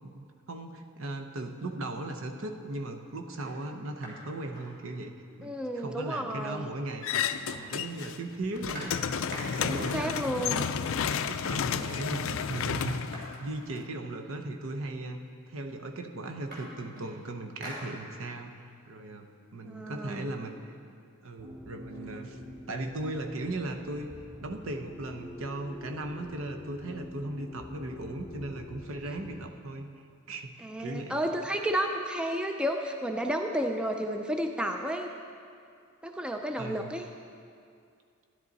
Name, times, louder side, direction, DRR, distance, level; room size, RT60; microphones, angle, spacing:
voice 1, 0.0-5.1 5.4-7.2 7.6-8.9 9.3-10.1 11.2-13.1 13.4-15.2 15.5-20.7 21.2-22.4 22.7-24.1 24.4-31.2 36.6-36.9, right 2 dB, 65° right, 5 dB, 0.8 m, -37 dB
sound 1, 3.3-5.4 5.7-5.8 6.0-6.9 7.1-9.9 10.8-10.9 11.3-11.8 12.0-14.5 15.3-15.4 15.7-18.5 18.9-20.6, equal, 45° right, 3.3 m, -48 dB
voice 2, 5.4-6.7 9.6-10.7 19.6-20.3 30.6-35.1 36.0-37.1, equal, 5° right, 4 dB, 0.4 m, -32 dB
sound 2, 7.0-8.2 8.5-13.8, left 7 dB, 65° left, 0.4 m, -31 dB
sound 3, 21.4-29.4, left 1 dB, 25° right, 1.7 m, -46 dB
13.0 x 10.5 x 4.0 m, 2.4 s
head